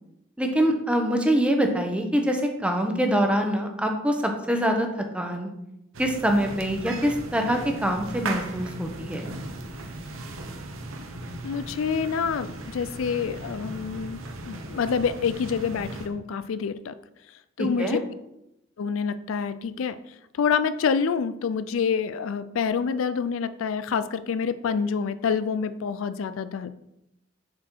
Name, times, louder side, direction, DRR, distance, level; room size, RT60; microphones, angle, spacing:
voice 1, 0.4-5.5 6.0-9.3 17.6-18.0, equal, 5° right, 3 dB, 0.8 m, -24 dB
sound 1, 5.9-16.1, right 2 dB, 85° right, 0.9 m, -37 dB
voice 2, 11.4-14.2 14.5-16.9 17.6-18.0 18.8-20.0 20.3-26.7, left 6 dB, 80° left, 13 dB, 0.4 m, -27 dB
7.4 x 4.2 x 4.5 m, 0.83 s
head